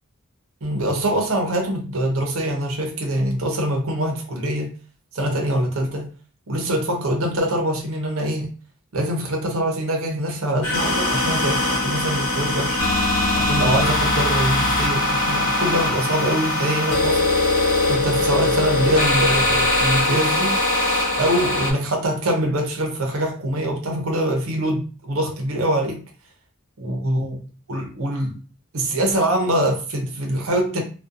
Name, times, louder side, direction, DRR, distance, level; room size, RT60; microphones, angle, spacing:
voice 1, 0.6-4.7 5.1-6.1 6.5-8.5 8.9-12.8 13.4-17.2 17.9-20.6 21.2-26.0 26.8-27.4 27.7-28.4 28.7-30.8, right 1 dB, 70° right, 0.6 m, -24 dB
sound 1, 10.6-21.7, left 2 dB, 75° left, 1.0 m, -21 dB
2.5 x 2.2 x 2.5 m
head